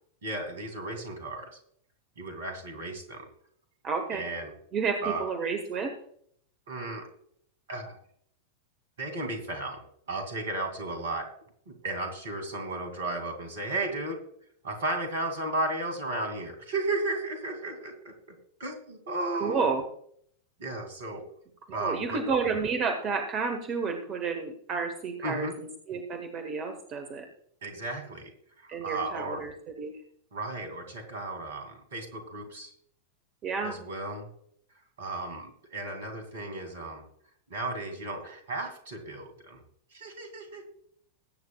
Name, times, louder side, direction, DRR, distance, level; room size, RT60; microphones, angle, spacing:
voice 1, 0.2-1.5 2.2-3.2 4.1-4.5 5.0-5.3 6.7-7.1 7.7-8.0 9.0-11.3 11.7-14.2 14.6-19.8 20.6-21.2 21.7-22.2 25.2-25.5 27.6-28.3 28.6-29.5 30.3-32.7 33.6-34.3 35.0-37.0 37.5-39.6 39.9-40.7, right 2 dB, 60° right, 6 dB, 2.6 m, -34 dB
voice 2, 3.8-4.2 4.7-5.9 19.4-19.8 21.7-27.2 28.7-29.5 29.8-29.9 33.4-33.8, right 5 dB, 35° right, 5 dB, 1.4 m, -30 dB
21.0 x 8.7 x 2.4 m, 0.65 s
figure-of-eight pair, 90°, 0 cm